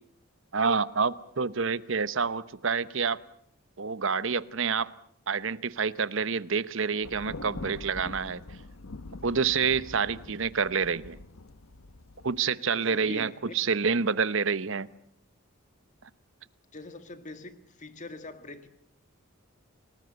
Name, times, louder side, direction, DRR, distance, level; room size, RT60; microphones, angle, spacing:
voice 1, 0.5-3.2 3.8-4.9 5.3-8.4 9.2-11.2 12.2-14.9, right 5 dB, 65° right, 16 dB, 0.9 m, -28 dB
Thunder, 7.0-12.4, left 2 dB, 80° left, 1.0 m, -44 dB
voice 2, 12.7-13.7 16.7-18.7, left 2 dB, 35° left, 10 dB, 1.9 m, -44 dB
28.5 x 19.0 x 8.0 m, 0.70 s
head